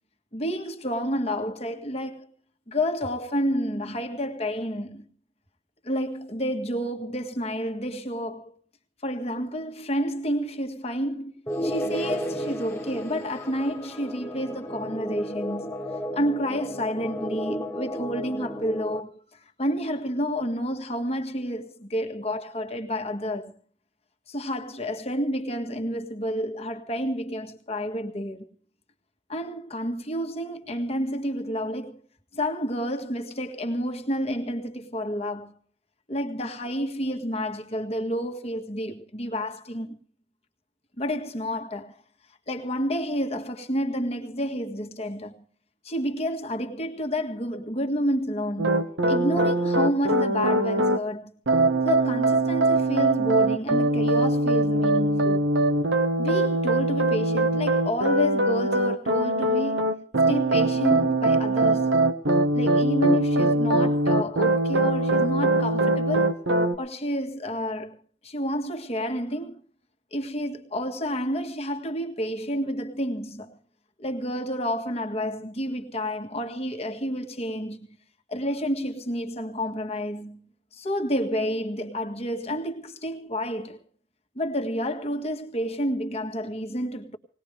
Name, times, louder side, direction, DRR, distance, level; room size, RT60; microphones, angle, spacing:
voice 1, 0.3-2.3 2.7-5.0 5.8-8.5 9.0-11.3 11.6-23.5 24.3-28.5 29.3-32.0 32.3-35.5 36.1-40.0 41.0-41.9 42.5-45.4 45.8-51.3 51.8-55.5 56.2-59.9 60.3-61.9 62.5-66.4 66.8-68.0 68.2-69.6 70.1-73.6 74.0-77.8 78.3-83.8 84.3-87.2, equal, 35° left, 1.7 m, -30 dB
sound 1, 11.5-19.0, equal, 15° left, 1.4 m, -33 dB
sound 2, 48.6-51.0 51.5-66.8, right 2 dB, 80° right, 1.2 m, -22 dB
19.5 x 19.5 x 3.4 m
head